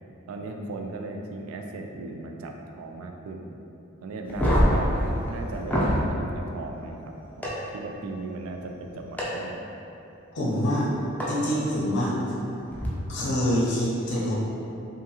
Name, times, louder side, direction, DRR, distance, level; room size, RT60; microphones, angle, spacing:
voice 1, 0.3-3.5 4.0-7.5 7.7-9.6, right 2 dB, 80° right, 3 dB, 0.3 m, -37 dB
sound 1, 4.3-6.0 7.4-7.5 9.2-9.3 11.2-11.3 12.7-12.9, equal, 5° left, 0.4 m, -23 dB
voice 2, 10.3-10.9 11.3-12.1 13.1-14.3, equal, 55° left, -6 dB, 0.6 m, -25 dB
2.7 x 2.5 x 2.7 m, 2.8 s
head